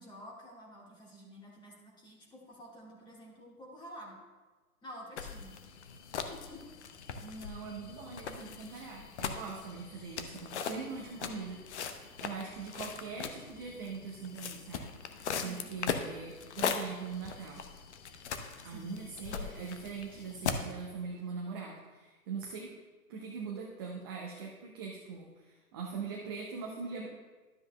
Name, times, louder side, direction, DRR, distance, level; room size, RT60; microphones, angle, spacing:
voice 1, 0.0-4.2 4.8-5.5 6.3-6.6 8.7-8.9 15.3-15.7 18.6-19.0, equal, 10° left, -3 dB, 1.6 m, -50 dB
sound 1, 5.2-20.7, left 6 dB, 50° left, 0.8 m, -40 dB
voice 2, 7.2-11.8 12.2-17.6 18.6-22.7 23.1-27.1, right 5 dB, 20° right, -1 dB, 0.5 m, -42 dB
12.5 x 7.8 x 2.2 m, 1.3 s
figure-of-eight pair, 130°, 45 cm